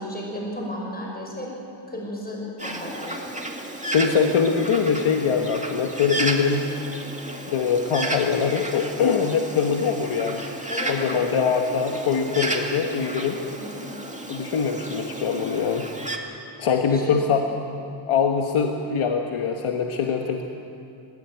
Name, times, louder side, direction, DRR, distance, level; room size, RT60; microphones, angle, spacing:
voice 1, 0.0-1.5 1.9-3.2 10.7-11.2 13.6-13.9 16.8-17.2, left 1 dB, 20° left, -2 dB, 5.9 m, -33 dB
Bird, 2.6-16.2, right 1 dB, 15° right, 2.2 m, -32 dB
voice 2, 3.9-6.6 7.5-10.4 10.9-13.4 14.3-15.9 16.6-17.5 18.1-20.4, left 6 dB, 90° left, 3 dB, 1.3 m, -23 dB
21.0 x 17.0 x 9.3 m, 2.7 s
wide cardioid pair, 85°, 48 cm